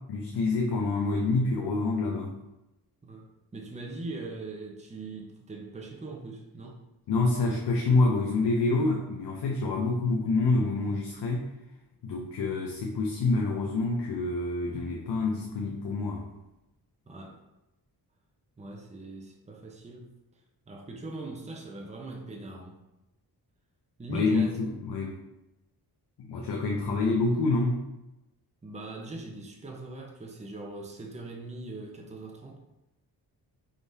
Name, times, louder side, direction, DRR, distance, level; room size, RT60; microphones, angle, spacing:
voice 1, 0.1-2.4 7.1-11.5 12.0-16.3 24.1-25.2 26.2-27.8, left 3 dB, 70° left, 0 dB, 0.7 m, -27 dB
voice 2, 3.5-6.8 17.1-17.4 18.6-20.1 20.7-22.8 24.0-24.6 28.6-32.6, right 2 dB, 15° right, 0 dB, 0.7 m, -41 dB
4.6 x 3.7 x 2.7 m, 0.94 s
cardioid pair, 80°, 41 cm